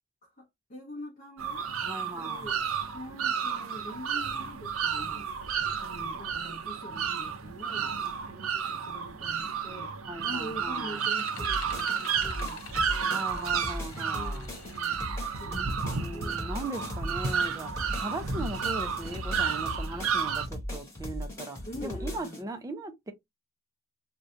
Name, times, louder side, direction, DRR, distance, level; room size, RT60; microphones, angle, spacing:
voice 1, 0.2-1.7 2.1-2.7 2.9-5.3 5.8-13.3 14.0-15.1 15.4-16.4 21.6-22.5, equal, 35° left, 0.7 m, -44 dB
sound 1, 1.4-20.5, right 6 dB, 70° right, 0.5 m, -32 dB
voice 2, 1.8-2.5 6.9-7.0 10.1-11.0 13.1-14.5 15.4-17.7 18.0-23.1, right 2 dB, 15° right, 0.4 m, -39 dB
sound 2, 10.9-15.0, left 8 dB, 80° left, 0.5 m, -48 dB
sound 3, 11.4-22.4, left 1 dB, 15° left, 1.1 m, -38 dB
2.6 x 2.2 x 3.6 m
head